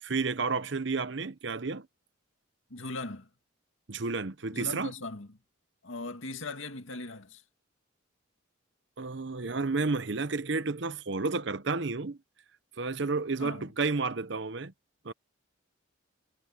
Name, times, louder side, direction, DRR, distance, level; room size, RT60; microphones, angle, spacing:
voice 1, 0.0-1.9 3.9-4.9 9.0-12.2 12.8-14.7 15.0-15.1, right 4 dB, 60° right, 0.8 m, -31 dB
voice 2, 2.7-3.3 4.5-5.3 5.8-7.4 13.4-13.7, left 3 dB, 75° left, 2.1 m, -39 dB
head